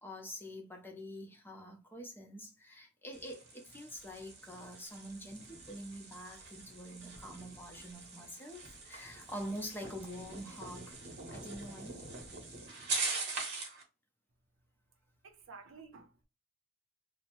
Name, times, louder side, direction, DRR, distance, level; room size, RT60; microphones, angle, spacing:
voice 1, 0.0-11.0 11.3-12.1, equal, 10° left, 0.6 m, -46 dB
sound 1, 3.1-13.8, right 3 dB, 55° right, 0.9 m, -43 dB
voice 2, 15.2-16.3, right 4 dB, 85° right, 0.6 m, -53 dB
2.7 x 2.0 x 2.9 m
head